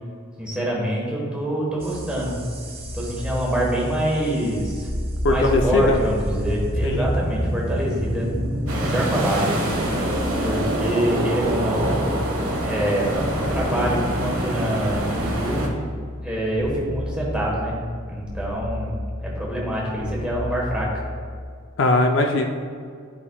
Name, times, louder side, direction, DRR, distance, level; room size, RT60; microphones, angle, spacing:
voice 1, 0.4-2.4 2.9-4.9 5.3-8.3 8.7-9.5 10.4-12.0 12.6-15.8 16.2-17.8 18.0-20.9, right 1 dB, 5° right, -4 dB, 1.3 m, -25 dB
sound 1, 1.8-21.4, equal, 25° right, 0.8 m, -29 dB
voice 2, 5.2-6.0 6.8-7.0 21.8-22.5, left 2 dB, 55° left, 4 dB, 0.4 m, -19 dB
sound 2, 8.7-15.7, right 1 dB, 80° right, 1.3 m, -27 dB
11.0 x 5.0 x 2.3 m, 2.1 s
head